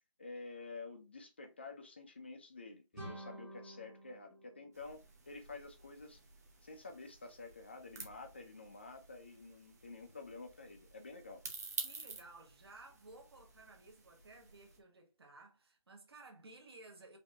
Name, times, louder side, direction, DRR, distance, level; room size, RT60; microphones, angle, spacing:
voice 1, 0.2-6.2 6.6-11.4, left 3 dB, 20° left, 0.5 m, -50 dB
sound 1, 2.9-5.7, right 1 dB, 5° right, 1.1 m, -51 dB
sound 2, 4.7-14.8, right 3 dB, 30° right, 0.8 m, -51 dB
voice 2, 11.8-17.2, right 2 dB, 45° right, 1.4 m, -57 dB
5.0 x 2.8 x 3.4 m
figure-of-eight pair, 170°, 17 cm